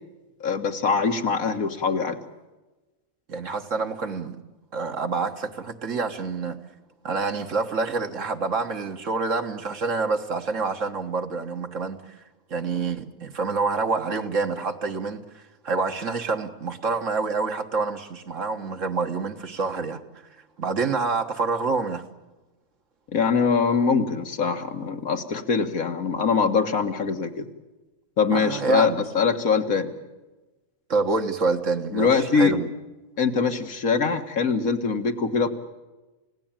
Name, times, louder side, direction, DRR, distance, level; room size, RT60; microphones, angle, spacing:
voice 1, 0.4-2.2 23.1-27.5 28.2-29.9 31.9-32.5 33.2-35.5, left 5 dB, 80° left, 6 dB, 2.1 m, -23 dB
voice 2, 3.3-4.4 4.7-6.6 7.0-12.0 12.5-20.0 20.6-22.0 28.3-29.0 30.9-32.7, right 4 dB, 65° right, 5 dB, 1.8 m, -27 dB
29.0 x 17.0 x 8.9 m, 1.1 s
omnidirectional pair, 1.4 m